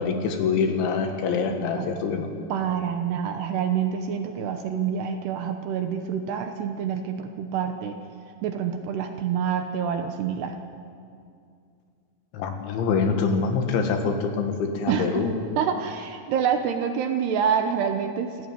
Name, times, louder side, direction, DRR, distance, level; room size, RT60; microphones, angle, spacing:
voice 1, 0.0-2.3 12.3-15.3, left 5 dB, 75° left, 5 dB, 4.1 m, -25 dB
voice 2, 1.5-1.9 2.5-8.0 8.4-10.5 14.9-15.2 15.6-18.5, right 7 dB, 70° right, 6 dB, 2.7 m, -27 dB
26.5 x 14.5 x 9.2 m, 2.4 s
omnidirectional pair, 5.6 m